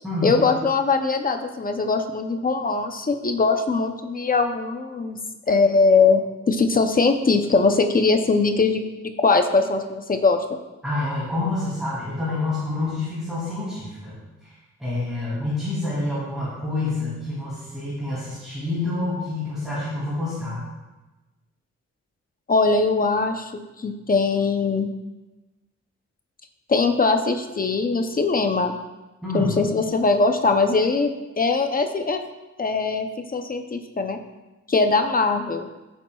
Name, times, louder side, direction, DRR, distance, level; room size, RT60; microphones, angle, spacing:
voice 1, 0.2-5.2 5.5-10.6 22.5-24.9 26.7-28.8 29.3-32.2 32.6-34.2 34.7-35.7, left 4 dB, 30° left, 6 dB, 0.6 m, -21 dB
voice 2, 10.8-14.2 14.8-20.6 29.2-29.5, left 2 dB, ahead, -10 dB, 2.7 m, -27 dB
14.0 x 7.3 x 2.3 m, 1.1 s
wide cardioid pair, 170°, 29 cm